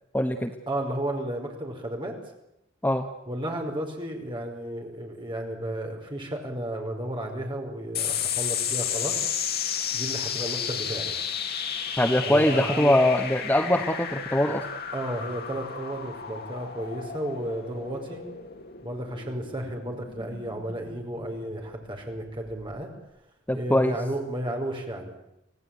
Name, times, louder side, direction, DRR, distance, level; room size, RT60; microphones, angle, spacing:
voice 1, 0.1-0.5 2.8-3.1 12.0-14.6 23.5-24.0, left 1 dB, 10° left, 5 dB, 1.2 m, -22 dB
voice 2, 0.7-2.1 3.3-9.2 9.9-11.1 12.2-13.0 14.9-18.3 18.8-22.9 23.5-25.1, right 1 dB, 25° right, 1 dB, 5.3 m, -33 dB
sound 1, 7.9-22.7, left 8 dB, 50° left, 2.3 m, -33 dB
26.5 x 17.5 x 9.3 m, 0.85 s
head